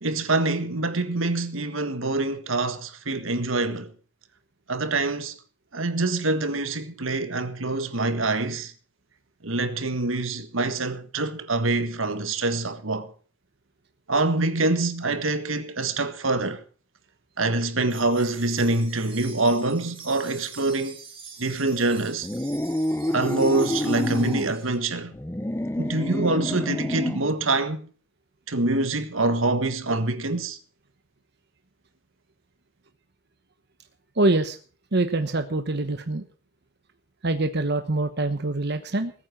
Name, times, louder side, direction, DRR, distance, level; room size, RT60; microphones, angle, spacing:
voice 1, 0.0-3.9 4.7-5.4 5.7-8.7 9.4-13.1 14.1-16.6 17.4-21.0 21.4-22.3 23.1-25.1 25.8-27.9 28.5-30.6, right 2 dB, 75° right, 1.6 m, -25 dB
sound 1, 17.9-24.7, right 6 dB, 25° right, 3.2 m, -45 dB
sound 2, 22.2-24.5 25.1-27.3, left 1 dB, 10° left, 0.7 m, -28 dB
voice 2, 34.2-34.6 34.9-36.2 37.2-39.1, right 2 dB, 55° right, 1.1 m, -24 dB
20.0 x 9.0 x 5.9 m
head